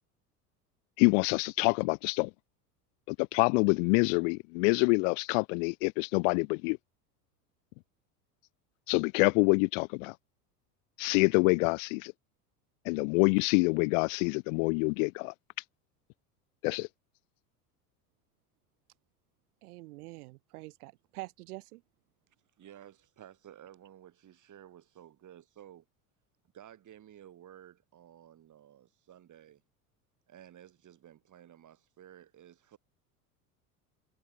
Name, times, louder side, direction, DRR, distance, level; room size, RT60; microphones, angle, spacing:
voice 1, 1.0-2.3 3.1-6.8 8.9-10.1 11.0-12.1 12.9-15.3 16.6-16.9, left 34 dB, 55° left, 0.5 m, -26 dB
voice 2, 19.6-21.8, right 22 dB, 70° right, 0.7 m, -45 dB
voice 3, 22.6-25.8 26.5-29.6 30.3-32.8, right 11 dB, 40° right, 4.4 m, -54 dB
hypercardioid pair, 80°, 47 cm